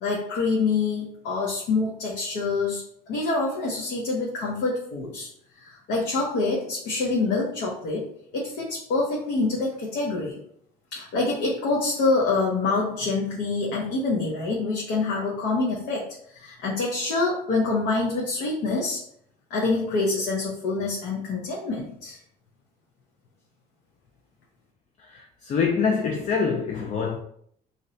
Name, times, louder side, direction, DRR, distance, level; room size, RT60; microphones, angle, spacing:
voice 1, 0.0-2.8 3.1-5.3 5.6-8.1 8.3-10.4 10.9-16.1 16.3-19.0 19.5-22.2, left 3 dB, 85° left, 0.8 m, -26 dB
voice 2, 25.0-27.2, left 5 dB, 45° left, 0.4 m, -25 dB
2.5 x 2.1 x 3.8 m
cardioid pair, 110°, 17 cm